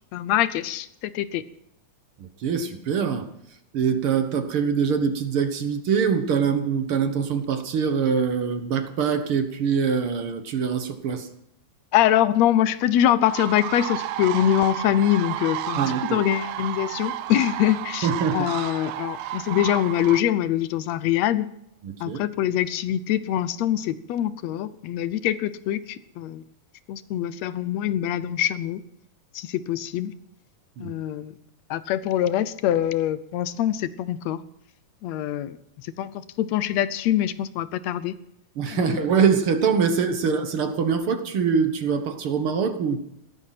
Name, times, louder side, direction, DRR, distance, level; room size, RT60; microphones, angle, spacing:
voice 1, 0.1-1.4 11.9-15.8 16.1-21.5 22.0-26.4 26.9-28.8 29.4-30.1 30.8-31.3 31.7-34.4 35.0-35.6 36.0-38.2 38.7-39.1, left 11 dB, 75° left, 15 dB, 1.8 m, -24 dB
voice 2, 2.2-3.3 3.7-11.3 15.7-16.2 18.0-18.5 21.8-22.2 30.8-30.9 38.6-43.0, right 6 dB, 55° right, 9 dB, 1.8 m, -24 dB
sound 1, 13.2-20.2, right 13 dB, 80° right, 2.1 m, -32 dB
16.5 x 13.0 x 5.8 m, 0.77 s
omnidirectional pair, 3.4 m